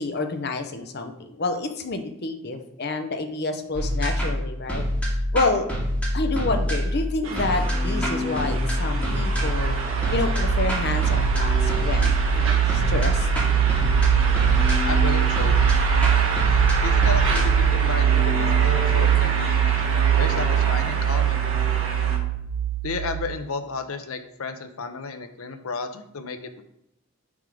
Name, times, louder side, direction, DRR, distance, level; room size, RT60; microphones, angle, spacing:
voice 1, 0.0-4.8 5.3-5.7 6.1-9.8 10.1-13.3, left 3 dB, 50° left, 6 dB, 0.8 m, -28 dB
sound 1, 3.7-20.9, equal, 5° left, 2.0 m, -26 dB
sound 2, 7.2-22.2, right 2 dB, 70° right, 1.5 m, -29 dB
sound 3, 8.9-23.4, right 11 dB, 50° right, 0.3 m, -22 dB
voice 2, 14.9-15.6 16.8-19.6 20.1-21.4 22.8-26.6, left 4 dB, 80° left, 8 dB, 0.7 m, -33 dB
7.1 x 3.6 x 5.0 m, 0.79 s
head